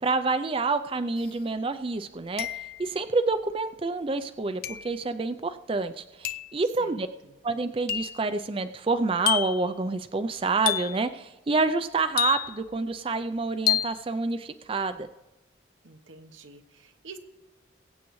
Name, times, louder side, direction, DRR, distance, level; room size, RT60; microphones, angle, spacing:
voice 1, 0.0-7.1 7.4-15.1, right 3 dB, 30° right, 10 dB, 0.4 m, -28 dB
sound 1, 1.2-1.3 2.4-2.9 4.6-5.0 6.2-6.6 7.9-8.2 9.3-9.7 10.7-11.1 12.2-12.7 13.7-14.0, left 12 dB, 50° left, 0.3 m, -28 dB
voice 2, 6.8-7.3 15.8-17.2, right 4 dB, 85° right, 7 dB, 1.0 m, -48 dB
22.0 x 8.3 x 3.1 m, 1.1 s
head